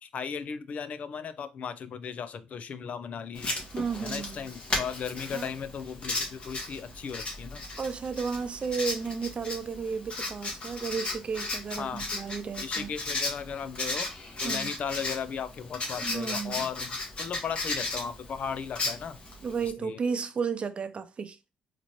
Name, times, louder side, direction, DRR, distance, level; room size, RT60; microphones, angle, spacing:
voice 1, 0.0-3.5 4.0-7.6 11.7-12.0 12.6-14.1 14.4-19.2 19.6-20.0, left 7 dB, 60° left, 0.5 m, -36 dB
Writing, 3.3-19.7, left 2 dB, 40° left, 1.6 m, -35 dB
voice 2, 3.7-4.4 5.3-5.5 7.8-12.9 14.4-14.7 16.0-16.6 19.4-21.4, right 5 dB, 45° right, 0.6 m, -33 dB
4.2 x 2.9 x 3.0 m
supercardioid pair, 70°, 3 cm